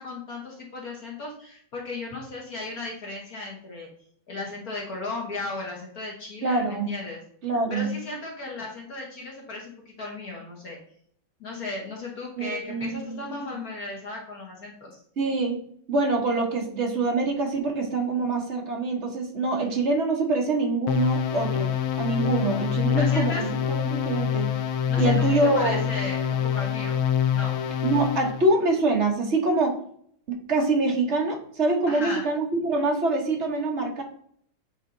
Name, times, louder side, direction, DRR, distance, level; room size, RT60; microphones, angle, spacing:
voice 1, 0.0-3.9 4.3-7.2 7.7-10.8 11.4-15.0 22.9-23.5 24.9-27.0 27.3-27.6 31.9-32.3, left 2 dB, 50° left, -2 dB, 1.6 m, -35 dB
voice 2, 6.4-6.9 7.4-7.9 12.4-13.3 15.2-15.6 15.9-24.5 25.0-25.9 27.8-29.8 30.3-34.0, right 2 dB, 40° right, 2 dB, 1.3 m, -25 dB
sound 1, 20.9-28.4, left 9 dB, 75° left, 0.8 m, -26 dB
8.3 x 3.5 x 3.8 m, 0.63 s
omnidirectional pair, 2.2 m